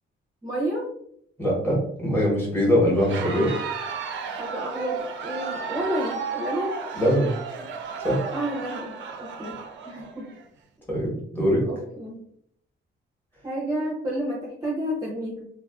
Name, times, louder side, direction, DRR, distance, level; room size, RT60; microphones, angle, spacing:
voice 1, 0.4-0.9 3.4-3.6 4.3-6.8 8.3-9.6 9.8-10.4 11.7-12.2 13.4-15.5, right 1 dB, 15° right, -5 dB, 0.5 m, -30 dB
voice 2, 1.4-3.5 6.9-7.3 8.0-8.2 10.9-11.6, equal, 10° left, -5 dB, 1.0 m, -22 dB
Crowd, 2.9-10.4, right 5 dB, 70° right, 0.4 m, -34 dB
2.6 x 2.4 x 2.3 m, 0.69 s
wide cardioid pair, 155°, 20 cm